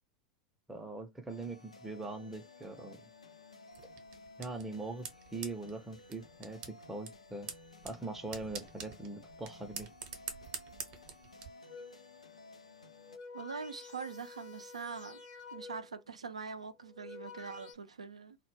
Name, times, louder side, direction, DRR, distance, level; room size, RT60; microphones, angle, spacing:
voice 1, 0.7-3.0 4.4-5.1 5.3-7.5 7.8-9.9, right 3 dB, 10° right, 0.5 m, -42 dB
sound 1, 1.3-13.2, left 2 dB, 85° left, 0.4 m, -55 dB
sound 2, 3.7-11.5, right 7 dB, 45° right, 0.7 m, -47 dB
sound 3, 11.7-12.1 12.9-16.0 16.8-17.8, left 4 dB, 60° left, 0.7 m, -50 dB
voice 2, 13.3-15.2 15.5-18.4, right 5 dB, 80° right, 0.3 m, -43 dB
2.0 x 2.0 x 3.1 m
figure-of-eight pair, 85°, 3 cm